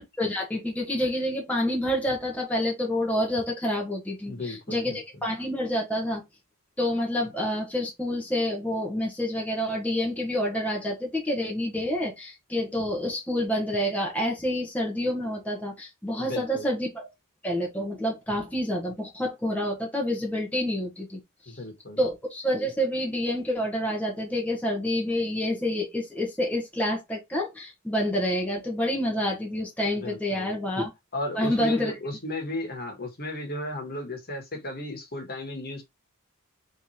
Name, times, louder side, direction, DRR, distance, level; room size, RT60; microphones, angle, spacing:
voice 1, 0.0-6.2 6.8-17.1 17.4-21.2 21.5-21.6 22.0-30.9 31.3-32.0, left 1 dB, 5° left, 1.1 m, -28 dB
voice 2, 4.3-5.0 16.2-16.7 21.5-22.0 29.9-30.6 31.1-35.8, left 1 dB, 45° left, 1.5 m, -34 dB
3.6 x 3.2 x 4.3 m
head